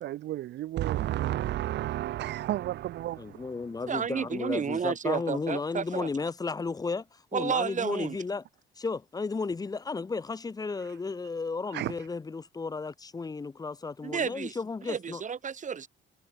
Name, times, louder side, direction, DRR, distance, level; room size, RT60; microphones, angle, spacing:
voice 1, 0.0-3.7 11.7-11.9, right 14 dB, 60° right, 0.4 m, -32 dB
voice 2, 3.2-8.4 8.8-15.2, left 4 dB, 20° left, 0.5 m, -34 dB
voice 3, 3.9-6.1 7.3-8.2 14.0-14.5 14.9-15.9, right 7 dB, 40° right, 1.1 m, -31 dB
cardioid pair, 90°, 20 cm